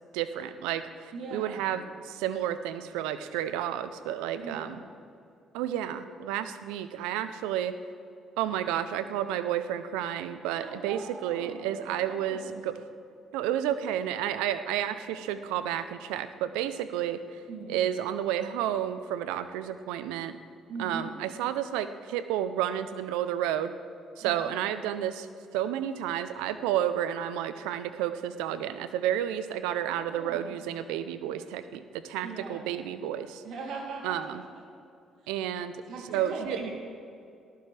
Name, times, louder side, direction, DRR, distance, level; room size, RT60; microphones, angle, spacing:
voice 1, 0.1-4.8 5.5-7.7 8.4-12.7 13.3-17.2 17.7-20.4 20.8-23.7 24.2-25.3 25.5-33.4 34.0-34.4 35.3-35.8 36.1-36.6, right 10 dB, 90° right, 12 dB, 0.6 m, -31 dB
voice 2, 1.1-1.8 4.3-4.9 10.6-11.6 11.9-12.6 17.5-17.8 20.7-21.1 24.2-24.5 30.1-30.6 32.2-32.7 33.4-34.4 35.9-36.7, right 3 dB, 75° right, -2 dB, 3.1 m, -40 dB
19.5 x 14.0 x 3.4 m, 2.5 s
supercardioid pair, 65°, 0 cm